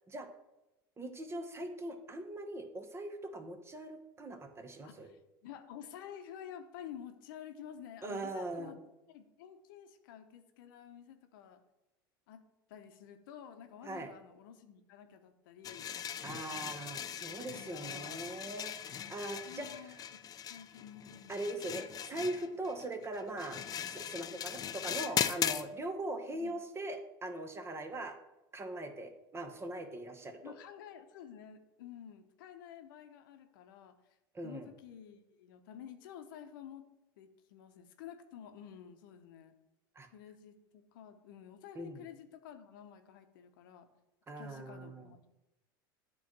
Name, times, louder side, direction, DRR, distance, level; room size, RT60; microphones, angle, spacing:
voice 1, 1.0-5.1 8.0-8.7 13.8-14.1 16.2-20.0 21.3-28.1 28.5-30.5 34.3-34.7 39.9-40.1 41.7-42.0 44.3-45.1, right 1 dB, 20° right, 7 dB, 1.0 m, -41 dB
voice 2, 4.8-8.8 9.1-11.6 12.3-12.4 12.7-15.9 17.2-18.2 19.5-20.2 20.5-21.6 26.3-26.5 30.4-33.9 34.4-36.8 37.2-39.5 40.1-43.9 44.4-45.3, left 9 dB, 75° left, 8 dB, 0.8 m, -51 dB
sound 1, 15.6-25.6, left 9 dB, 35° left, 0.4 m, -39 dB
8.5 x 3.1 x 6.0 m, 0.97 s
hypercardioid pair, 90°, 11 cm